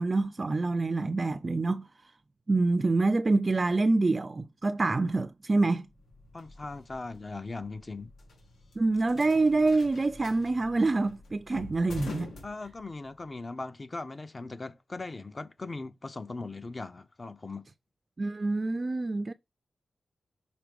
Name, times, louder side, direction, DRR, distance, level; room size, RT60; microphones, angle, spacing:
voice 1, 0.0-1.9 2.5-5.9 8.8-12.3 18.2-19.3, right 3 dB, 30° right, 0.4 m, -26 dB
sound 1, 5.9-13.2, left 3 dB, 85° left, 2.3 m, -46 dB
voice 2, 6.3-8.1 12.4-17.6, left 3 dB, 30° left, 0.5 m, -39 dB
6.1 x 3.7 x 5.1 m
wide cardioid pair, 140°, 0 cm